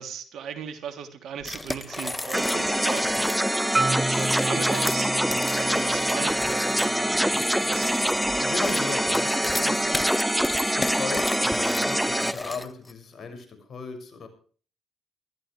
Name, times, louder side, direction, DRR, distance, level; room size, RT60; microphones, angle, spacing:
voice 1, 0.0-3.5 4.0-6.8 7.6-8.0 9.8-10.0, right 7 dB, 70° right, 7 dB, 3.2 m, -37 dB
sound 1, 1.4-3.5 4.0-12.9, left 1 dB, 15° left, 1.5 m, -34 dB
sound 2, 2.3-12.3, equal, 5° right, 1.1 m, -25 dB
Marimba xylophone, 3.7-7.9, right 3 dB, 25° right, 0.8 m, -32 dB
voice 2, 8.4-10.1 10.6-14.3, left 4 dB, 55° left, 7 dB, 6.6 m, -37 dB
21.5 x 14.0 x 3.4 m, 0.42 s
supercardioid pair, 60°, 0 cm